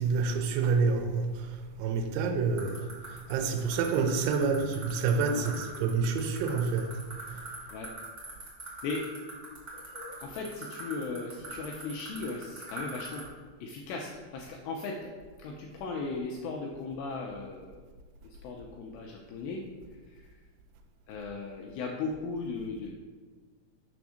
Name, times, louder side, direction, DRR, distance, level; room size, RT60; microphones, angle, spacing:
voice 1, 0.0-1.5 1.8-2.8 3.3-6.9, right 5 dB, 80° right, 6 dB, 3.0 m, -28 dB
sound 1, 2.6-13.2, right 4 dB, 50° right, 0.7 m, -42 dB
voice 2, 9.7-13.2 13.6-15.1 15.4-17.8 18.2-19.6 20.1-20.4 21.1-22.9, left 4 dB, 90° left, 0 dB, 2.4 m, -37 dB
7.0 x 3.5 x 6.3 m, 1.4 s
omnidirectional pair, 5.5 m